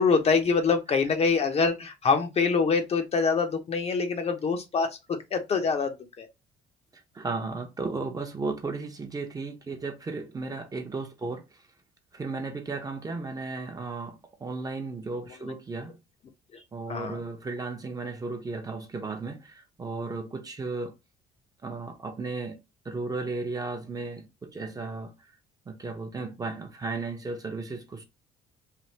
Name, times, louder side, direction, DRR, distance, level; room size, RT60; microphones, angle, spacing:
voice 1, 0.0-6.3 15.4-15.5 16.5-16.6 16.9-17.2, left 5 dB, 35° left, 0.7 m, -25 dB
voice 2, 6.9-11.6 12.1-16.0 16.7-20.9 21.6-25.1 25.7-28.0, right 3 dB, 20° right, 0.6 m, -35 dB
3.3 x 2.4 x 2.8 m
cardioid pair, 110°, 17 cm